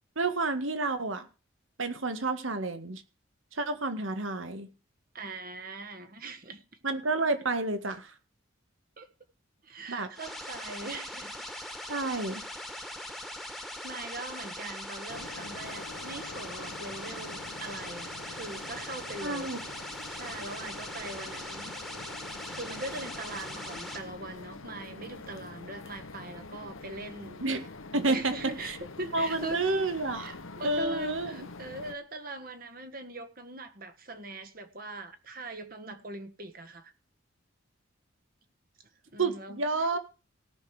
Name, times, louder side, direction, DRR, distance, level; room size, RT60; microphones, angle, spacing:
voice 1, 0.2-1.3 1.8-3.0 3.5-4.7 6.8-8.1 9.9-10.1 11.9-12.5 19.2-19.6 27.4-27.6 27.9-28.3 28.7-28.8 29.1-30.3 30.6-31.5 39.2-40.0, right 3 dB, 75° right, 1.8 m, -30 dB
voice 2, 5.1-6.6 9.0-9.1 9.6-11.4 13.8-19.5 19.8-21.8 22.5-27.4 28.1-29.6 30.2-36.9 39.1-39.6, right 2 dB, 45° right, 1.5 m, -41 dB
sound 1, 10.2-24.0, left 1 dB, ahead, 1.6 m, -41 dB
sound 2, 15.1-32.0, left 3 dB, 80° left, 1.1 m, -45 dB
18.0 x 6.3 x 4.9 m
head